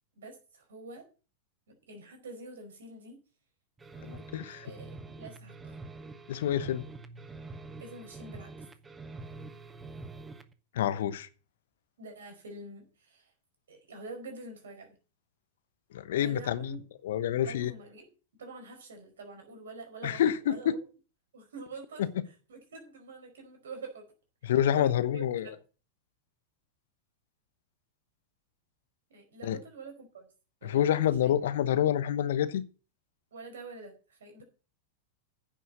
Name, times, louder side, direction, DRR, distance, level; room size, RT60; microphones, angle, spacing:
voice 1, 0.2-1.1 1.7-3.2 4.5-5.8 7.8-8.7 12.0-13.3 13.7-15.0 16.2-16.8 17.5-18.1 18.4-20.8 21.3-24.1 24.4-25.6 29.1-30.3 30.6-31.3 33.3-34.4, right 3 dB, 70° right, 4.9 m, -46 dB
sound 1, 3.8-10.5, right 3 dB, 15° right, 1.2 m, -46 dB
voice 2, 4.0-4.6 6.3-6.8 10.7-11.3 15.9-16.8 17.0-17.7 20.0-20.8 22.0-22.1 24.4-25.5 29.4-29.6 30.6-32.6, left 10 dB, 65° left, 1.0 m, -28 dB
10.0 x 6.9 x 7.4 m
figure-of-eight pair, 95°, 0 cm